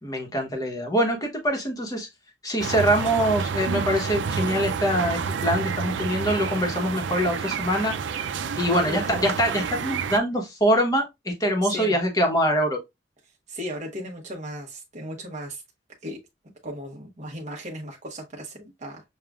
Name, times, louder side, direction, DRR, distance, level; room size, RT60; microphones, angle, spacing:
voice 1, 0.0-2.1 2.4-7.9 8.6-12.8, equal, 20° left, 1.0 m, -24 dB
sound 1, 2.6-10.2, right 6 dB, 75° right, 0.4 m, -29 dB
voice 2, 8.6-9.2 11.6-12.0 13.5-15.6 16.0-16.2 16.6-19.0, equal, 40° right, 1.1 m, -36 dB
6.8 x 2.4 x 2.4 m
head